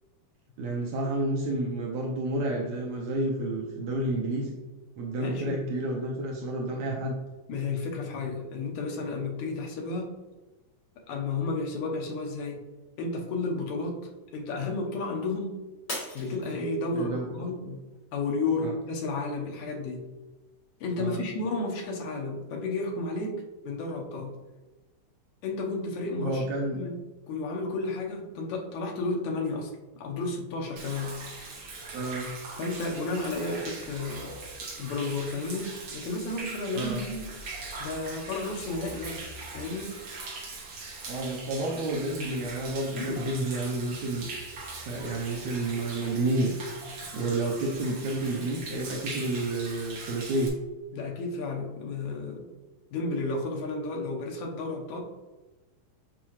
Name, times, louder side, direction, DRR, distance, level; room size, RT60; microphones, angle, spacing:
voice 1, 0.6-4.5 5.0-7.2 16.9-17.8 18.6-18.7 21.0-21.2 26.2-26.8 31.9-32.3 36.7-37.0 41.1-44.3 44.7-46.5 47.1-50.5, right 2 dB, 85° right, -1 dB, 1.5 m, -30 dB
voice 2, 5.2-5.6 7.5-10.1 11.1-12.6 13.0-15.5 16.1-17.6 18.1-20.1 20.8-24.3 25.4-26.5 26.8-27.0 27.3-29.7 30.0-31.2 32.6-34.3 34.8-37.4 37.8-39.3 39.5-40.1 43.0-43.3 50.9-52.5 52.9-55.0, left 3 dB, 70° left, 0 dB, 1.9 m, -32 dB
Shatter, 15.9-17.2 17.7-18.1 18.7-18.8, left 1 dB, 40° left, 0.9 m, -38 dB
Human voice / Rain / Stream, 30.8-50.5, right 3 dB, 60° right, 1.5 m, -41 dB
7.6 x 4.7 x 3.0 m, 1.2 s
omnidirectional pair, 4.2 m